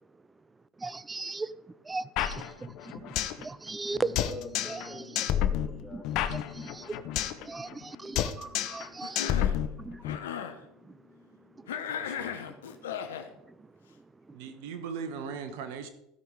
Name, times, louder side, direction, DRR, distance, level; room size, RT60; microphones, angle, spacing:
voice 1, 0.8-4.2 4.7-5.3 5.9-6.0 6.3-11.2 11.5-14.4, right 3 dB, 15° right, 0.6 m, -40 dB
sound 1, 2.2-3.4 3.7-3.8 4.2-4.9 5.2-7.4 7.7-7.9 8.2-8.9 9.2-10.2, left 11 dB, 60° left, 0.9 m, -29 dB
sound 2, 4.0-13.6, left 7 dB, 25° left, 1.5 m, -54 dB
voice 2, 4.2-6.7, left 2 dB, 5° left, 1.5 m, -45 dB
Cough, 9.0-9.6 10.0-10.6 11.7-13.3, left 8 dB, 85° left, 1.0 m, -36 dB
voice 3, 12.0-12.3 14.3-15.9, right 6 dB, 70° right, 1.4 m, -39 dB
15.5 x 5.7 x 4.8 m
hypercardioid pair, 85°, 0 cm